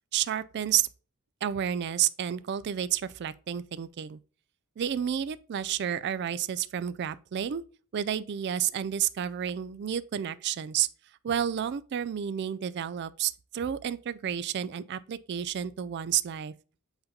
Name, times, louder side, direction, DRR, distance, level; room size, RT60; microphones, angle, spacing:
voice 1, 0.1-0.9 1.4-4.2 4.8-7.6 7.9-10.9 11.2-16.5, right 9 dB, 50° right, 0.3 m, -30 dB
8.0 x 2.8 x 5.2 m
head